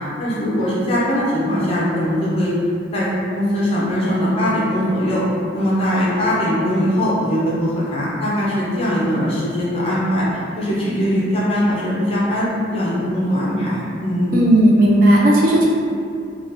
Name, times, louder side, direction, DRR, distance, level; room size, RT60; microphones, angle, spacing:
voice 1, 0.0-2.5 2.9-3.1 3.3-5.2 5.5-14.3, equal, 30° left, -7 dB, 0.5 m, -21 dB
voice 2, 14.3-15.7, right 1 dB, 50° right, -4 dB, 0.5 m, -13 dB
3.3 x 2.3 x 2.8 m, 2.4 s
head